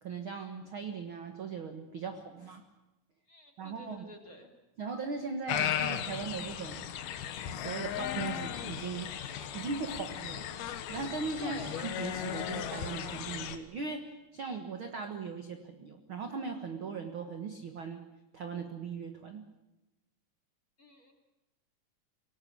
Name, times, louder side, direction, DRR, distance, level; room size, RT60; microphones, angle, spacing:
voice 1, 0.0-2.6 3.6-4.1 4.8-6.9 7.5-9.1 9.5-10.4 10.9-18.0 18.3-19.4, right 5 dB, 50° right, 6 dB, 1.6 m, -39 dB
voice 2, 3.3-4.5 11.4-11.9 14.5-14.6 20.8-21.1, left 2 dB, 25° left, 3 dB, 3.0 m, -48 dB
sound 1, 5.5-13.6, left 10 dB, 85° left, 3.3 m, -36 dB
25.0 x 19.0 x 8.7 m, 0.98 s
omnidirectional pair, 4.3 m